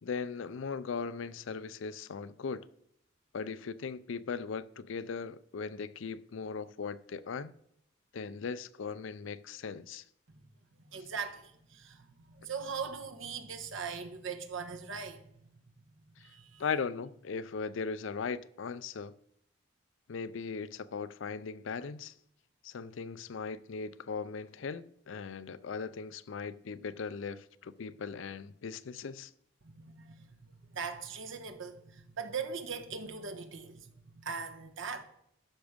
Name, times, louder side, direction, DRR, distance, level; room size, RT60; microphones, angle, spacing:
voice 1, 0.0-2.7 3.3-7.5 8.1-10.0 10.9-11.0 16.6-19.1 20.1-22.1 22.6-29.3, left 5 dB, 70° left, 0.4 m, -38 dB
voice 2, 10.8-15.3 16.2-16.6 29.6-35.0, right 5 dB, 75° right, 1.2 m, -40 dB
11.5 x 6.1 x 5.1 m
head